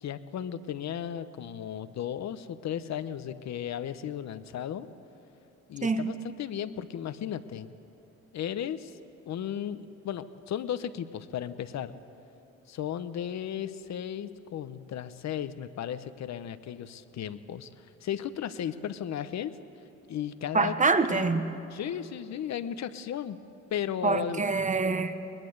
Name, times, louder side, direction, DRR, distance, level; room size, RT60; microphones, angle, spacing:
voice 1, 0.0-4.9 5.7-7.7 8.3-9.0 9.3-11.9 12.7-19.5 20.1-20.7 21.1-21.3 21.7-23.4 23.7-24.4, left 9 dB, 65° left, 13 dB, 1.0 m, -35 dB
voice 2, 20.5-21.4 24.0-25.1, right 4 dB, 25° right, 10 dB, 1.3 m, -25 dB
21.0 x 21.0 x 8.0 m, 2.8 s
cardioid pair, 90°, 30 cm